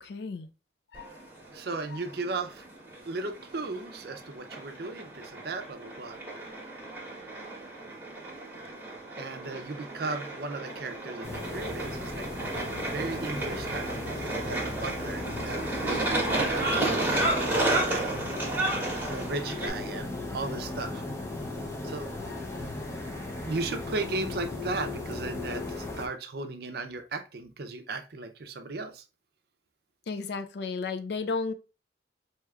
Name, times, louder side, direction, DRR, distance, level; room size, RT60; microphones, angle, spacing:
voice 1, 0.0-0.5 0.9-1.2 1.9-2.0 22.3-22.4 30.1-31.5, left 4 dB, 60° left, 0.4 m, -34 dB
sound 1, 0.9-19.7, right 2 dB, 10° right, 1.0 m, -32 dB
voice 2, 1.5-2.6 3.1-6.2 9.2-12.3 12.9-16.6 16.9-17.1 17.4-18.2 19.0-21.0 21.8-22.1 23.5-29.0, right 3 dB, 55° right, 0.5 m, -36 dB
sound 2, 11.2-26.1, left 2 dB, 15° left, 0.6 m, -37 dB
4.5 x 2.8 x 2.3 m
head